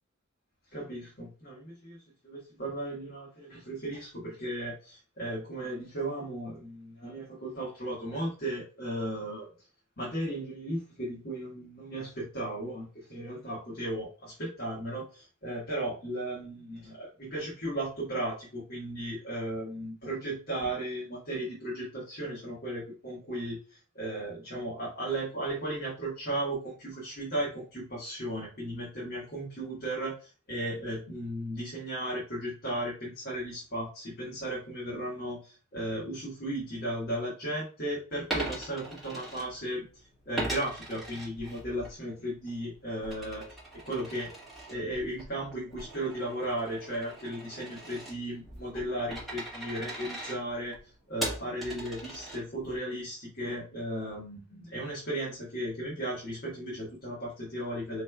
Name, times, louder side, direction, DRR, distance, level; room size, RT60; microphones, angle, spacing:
voice 1, 0.7-2.0 2.2-9.5 10.0-43.4 43.8-44.3 44.7-50.8 51.1-58.0, right 1 dB, 45° left, -6 dB, 1.3 m, -35 dB
Coin (dropping), 38.2-39.9 40.4-41.9 42.3-52.8, right 1 dB, ahead, 1.1 m, -40 dB
4.2 x 3.1 x 2.3 m, 0.36 s
head